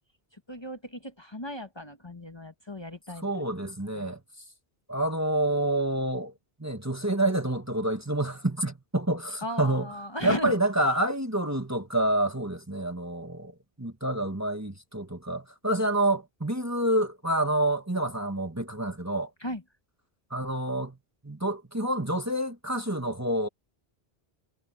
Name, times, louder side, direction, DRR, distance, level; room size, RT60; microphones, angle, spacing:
voice 1, 0.5-3.3 3.9-4.1 9.4-10.5 19.4-19.6, left 1 dB, 25° left, 1.4 m, -36 dB
voice 2, 3.2-4.2 4.9-6.3 6.6-9.9 10.2-13.5 13.8-19.3 20.3-21.0 21.2-23.5, right 1 dB, 15° right, 1.5 m, -28 dB
omnidirectional pair, 1.1 m